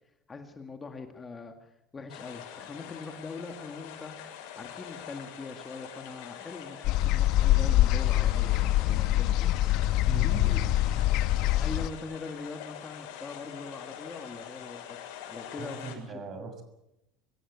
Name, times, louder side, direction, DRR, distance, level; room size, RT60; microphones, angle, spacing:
voice 1, 0.3-4.2 4.6-9.9 10.2-10.6 11.6-16.1, left 4 dB, 20° left, 5 dB, 2.0 m, -42 dB
sound 1, 2.1-16.0, left 9 dB, 80° left, 6.8 m, -44 dB
sound 2, 6.8-11.9, left 14 dB, 60° left, 1.0 m, -24 dB
voice 2, 10.0-10.8 11.3-11.4 15.6-16.6, right 4 dB, 35° right, 8 dB, 6.4 m, -39 dB
25.5 x 16.0 x 8.2 m, 0.87 s
cardioid pair, 135°, 0 cm